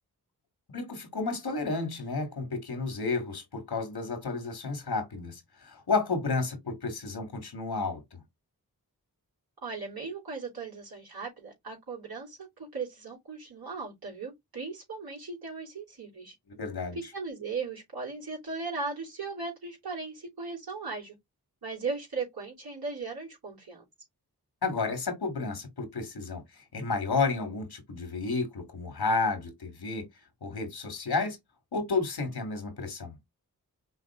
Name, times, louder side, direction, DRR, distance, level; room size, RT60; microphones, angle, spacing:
voice 1, 0.7-8.2 16.5-17.0 24.6-30.1 30.4-31.4 31.7-33.2, left 4 dB, 80° left, 1.9 m, -31 dB
voice 2, 9.6-16.3 16.9-21.2 21.6-23.8, right 4 dB, 75° right, 3.2 m, -37 dB
5.6 x 2.5 x 3.6 m
cardioid pair, 55°, 37 cm